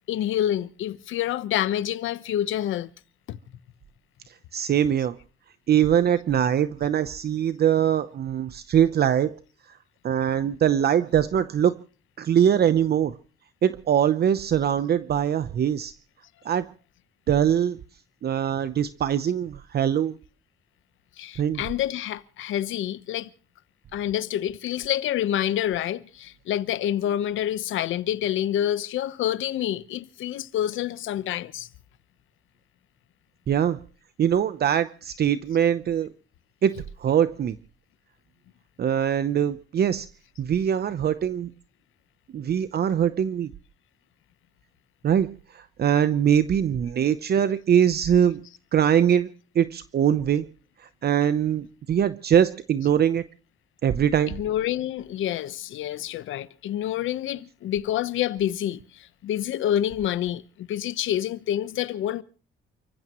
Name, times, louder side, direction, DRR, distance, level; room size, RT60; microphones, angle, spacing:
voice 1, 0.1-2.9 3.3-3.4 21.2-23.3 23.9-31.7 54.2-62.2, left 11 dB, 80° left, 1.1 m, -27 dB
voice 2, 4.3-5.2 5.7-9.3 9.7-9.8 10.0-11.8 12.2-13.2 13.6-15.9 16.4-16.7 17.3-17.8 18.2-20.1 21.4-21.6 33.5-33.8 34.2-36.1 36.6-37.6 38.8-40.1 40.4-41.5 42.3-43.5 45.0-48.4 48.7-49.3 49.5-50.5 50.8-53.2 53.8-54.4, right 9 dB, 55° right, 0.8 m, -22 dB
29.5 x 15.0 x 3.1 m
cardioid pair, 90°, 20 cm